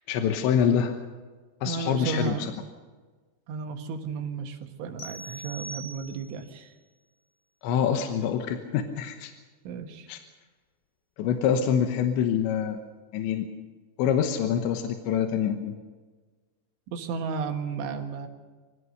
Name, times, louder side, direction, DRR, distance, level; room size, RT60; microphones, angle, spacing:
voice 1, 0.1-1.0 1.6-2.5 7.6-9.3 10.1-10.2 11.2-12.8 13.1-13.5 14.0-15.8, left 8 dB, 80° left, 6 dB, 3.4 m, -25 dB
voice 2, 1.6-2.6 3.5-6.7 9.7-10.1 16.9-18.3, right 5 dB, 90° right, 4 dB, 4.1 m, -33 dB
sound 1, 5.0-6.5, right 1 dB, 50° left, 4.0 m, -41 dB
24.5 x 17.0 x 6.5 m, 1.4 s
omnidirectional pair, 5.3 m